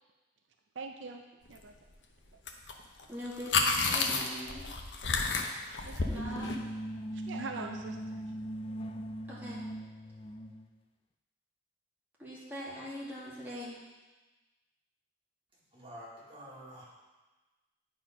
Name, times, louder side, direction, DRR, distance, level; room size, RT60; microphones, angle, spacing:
voice 1, 0.8-1.2 1.5-1.9 3.0-3.1 5.9-6.2 7.1-8.2, right 4 dB, 75° right, 4 dB, 0.5 m, -43 dB
sound 1, 2.5-2.7 3.0-6.6, left 4 dB, 70° left, 0.7 m, -31 dB
voice 2, 3.1-4.7 6.1-6.6 9.3-9.6 12.2-13.8, equal, 10° right, -8 dB, 1.9 m, -42 dB
sound 2, 5.9-10.7, right 1 dB, 30° left, 0.4 m, -40 dB
voice 3, 15.7-16.8, equal, 25° right, -7 dB, 2.2 m, -48 dB
9.1 x 4.4 x 5.2 m, 1.2 s
head